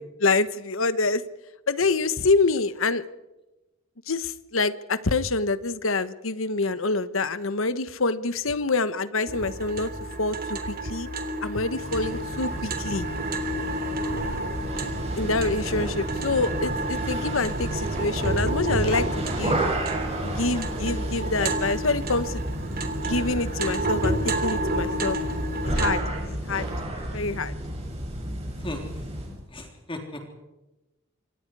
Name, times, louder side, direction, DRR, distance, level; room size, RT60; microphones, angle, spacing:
voice 1, 0.2-1.2 1.7-3.0 4.1-9.9 10.2-11.1 11.4-13.1 15.2-19.6 20.2-22.4 23.0-25.2 25.6-26.7 27.1-27.5, left 3 dB, 70° left, 14 dB, 1.2 m, -26 dB
sound 1, 9.3-26.0, right 2 dB, 45° right, 3.2 m, -30 dB
sound 2, 11.6-29.4, right 1 dB, 30° right, 7.1 m, -32 dB
voice 2, 29.5-30.3, left 1 dB, 25° left, 3 dB, 3.6 m, -36 dB
28.0 x 24.5 x 4.8 m, 1.0 s
head